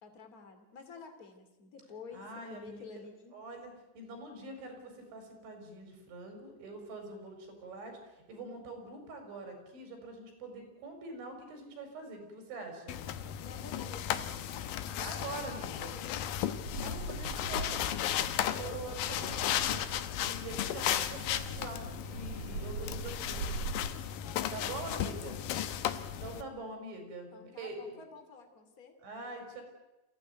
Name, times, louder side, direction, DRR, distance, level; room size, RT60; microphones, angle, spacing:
voice 1, 0.0-2.2 2.5-3.3 13.4-16.4 18.4-19.0 24.2-25.5 27.3-28.9, left 5 dB, 25° left, 6 dB, 2.2 m, -51 dB
voice 2, 2.1-3.0 3.3-13.0 15.0-16.0 16.7-17.9 18.2-23.6 24.5-25.4 26.2-28.0 29.0-29.6, right 2 dB, 80° right, 5 dB, 6.8 m, -44 dB
sound 1, 12.9-26.4, left 11 dB, 75° left, 2.1 m, -35 dB
Bird vocalization bird call bird song, 16.6-23.9, right 4 dB, 55° right, 3.2 m, -43 dB
28.0 x 15.5 x 9.3 m, 1.0 s
omnidirectional pair, 5.3 m